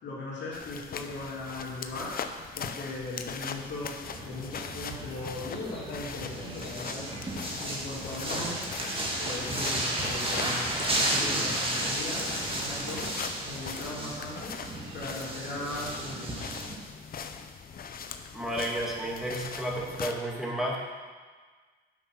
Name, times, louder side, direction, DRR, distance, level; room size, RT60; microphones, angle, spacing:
voice 1, 0.0-2.3 2.5-7.3 7.6-13.1 13.4-14.6 14.9-16.6, left 2 dB, 65° left, -6 dB, 2.8 m, -38 dB
sound 1, 0.5-20.1, left 6 dB, 50° left, 0.7 m, -41 dB
sound 2, 4.0-16.7, right 1 dB, 25° right, 2.1 m, -33 dB
voice 2, 18.3-20.8, right 1 dB, ahead, -3 dB, 2.3 m, -32 dB
9.4 x 5.7 x 6.2 m, 1.5 s
cardioid pair, 90°, 20 cm